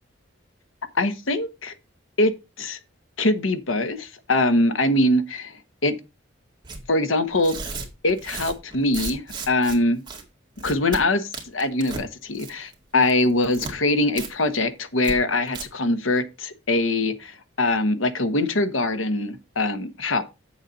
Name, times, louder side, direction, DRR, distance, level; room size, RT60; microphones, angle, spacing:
voice 1, 0.9-1.7 2.2-2.3 2.6-2.8 3.2-6.0 6.9-7.6 8.0-10.0 10.6-20.2, left 2 dB, 75° left, 1.1 m, -23 dB
Tearing, 6.6-6.8 7.3-9.8 10.1-10.2 10.6-11.0 11.3-12.1 12.3-12.7 13.0-13.7 14.2-14.3 14.6-14.7 15.0-15.1 15.5-15.6, right 4 dB, 20° right, 2.0 m, -34 dB
7.8 x 7.3 x 4.0 m
head